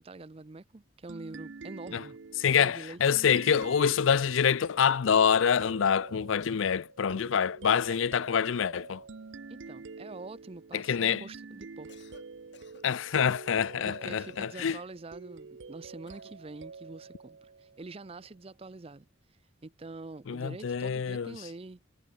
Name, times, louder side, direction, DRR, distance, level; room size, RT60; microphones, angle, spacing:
voice 1, 0.0-2.2 2.5-3.0 9.5-11.9 13.8-19.1 19.6-21.8, right 3 dB, 30° right, 0.5 m, -45 dB
sound 1, 1.1-18.3, right 4 dB, 70° right, 0.6 m, -47 dB
voice 2, 2.4-9.0 10.7-11.2 12.8-14.8 20.3-21.4, left 7 dB, 80° left, 0.5 m, -26 dB
Cough, 11.7-12.3 12.5-13.5 14.2-14.9 16.0-16.4, left 3 dB, 60° left, 6.3 m, -57 dB
head